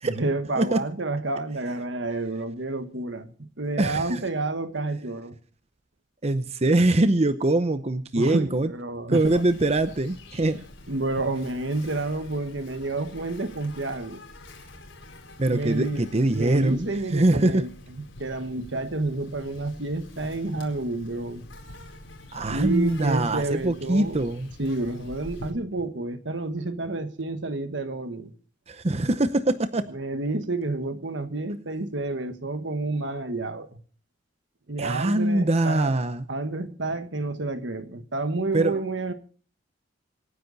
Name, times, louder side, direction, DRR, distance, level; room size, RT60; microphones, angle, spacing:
voice 1, 0.0-5.4 8.1-9.4 10.9-14.2 15.5-21.5 22.5-24.2 24.6-28.3 29.9-33.8 34.7-35.9 36.3-39.1, right 2 dB, 70° right, 1.5 m, -30 dB
voice 2, 3.8-4.2 6.2-8.7 9.1-10.6 15.4-17.6 22.3-24.5 28.7-29.9 34.8-36.2 38.5-38.8, right 2 dB, 35° right, 0.7 m, -23 dB
Insect, 9.2-25.5, left 1 dB, 90° left, 4.6 m, -45 dB
26.0 x 10.0 x 4.1 m
head